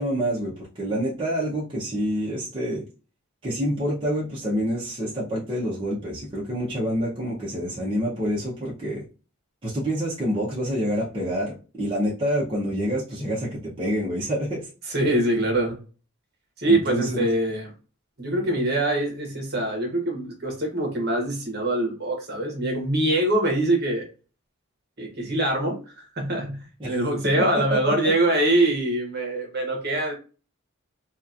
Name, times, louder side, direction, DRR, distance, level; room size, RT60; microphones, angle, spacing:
voice 1, 0.0-2.8 3.4-9.0 9.6-14.7 16.6-17.3 26.8-26.9 27.5-28.1, equal, 25° right, 0.7 m, -27 dB
voice 2, 14.9-15.8 16.6-17.7 18.2-24.1 25.0-26.6 26.8-30.1, right 1 dB, 45° right, 1.0 m, -24 dB
2.8 x 2.4 x 2.4 m
head